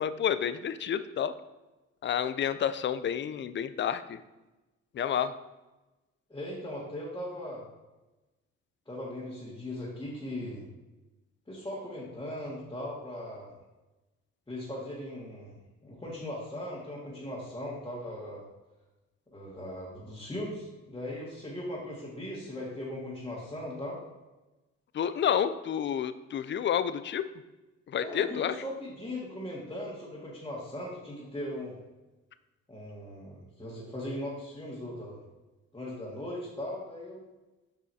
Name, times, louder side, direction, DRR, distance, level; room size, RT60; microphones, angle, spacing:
voice 1, 0.0-1.3 2.0-4.2 4.9-5.3 24.9-27.3 27.9-28.6, left 9 dB, 40° left, 12 dB, 0.4 m, -29 dB
voice 2, 6.3-7.7 8.9-10.7 11.5-13.5 14.5-15.6 15.8-18.4 19.3-24.0 28.0-31.8 32.7-35.2 35.7-37.2, left 1 dB, 15° left, -7 dB, 1.8 m, -39 dB
7.7 x 5.4 x 2.8 m, 1.1 s
cardioid pair, 90°, 30 cm